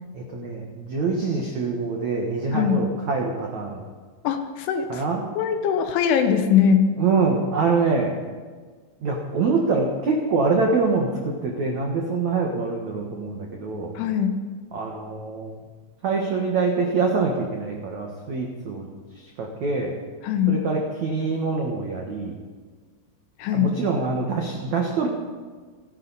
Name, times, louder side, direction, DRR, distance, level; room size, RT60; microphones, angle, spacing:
voice 1, 0.1-3.8 4.9-5.2 7.0-8.1 9.0-13.9 14.7-15.6 16.0-18.9 19.1-19.9 20.5-22.3 23.5-25.1, right 4 dB, 75° right, 0 dB, 1.7 m, -25 dB
voice 2, 4.2-5.0 5.4-6.9 14.0-14.4 20.2-20.6 23.4-23.7, left 8 dB, 75° left, 7 dB, 3.2 m, -21 dB
28.5 x 11.0 x 4.1 m, 1.5 s
omnidirectional pair, 5.8 m